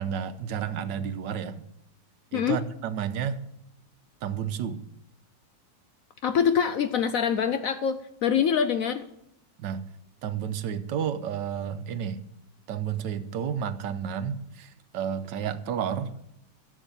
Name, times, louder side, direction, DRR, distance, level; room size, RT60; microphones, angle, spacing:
voice 1, 0.0-1.6 2.3-3.4 4.2-4.8 9.6-9.8 10.2-12.2 12.7-16.1, right 8 dB, 80° right, 11 dB, 1.4 m, -31 dB
voice 2, 2.3-2.6 6.2-9.0, left 7 dB, 70° left, 10 dB, 0.8 m, -25 dB
11.0 x 7.2 x 8.3 m, 0.79 s
omnidirectional pair, 1.9 m